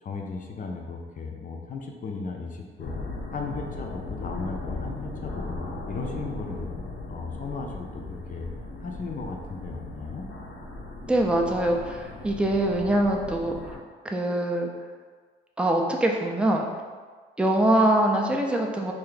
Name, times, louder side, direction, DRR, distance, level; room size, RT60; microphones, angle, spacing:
voice 1, 0.0-3.0 3.3-6.8 7.1-8.5 8.8-10.3, left 4 dB, 40° left, 2 dB, 0.6 m, -36 dB
sound 1, 2.8-13.8, left 2 dB, 85° left, 0.8 m, -37 dB
voice 2, 11.0-13.8 14.0-14.7 15.6-16.7 17.4-18.9, right 1 dB, 5° right, 1 dB, 0.5 m, -23 dB
3.3 x 2.6 x 3.9 m, 1.5 s
cardioid pair, 90°, 20 cm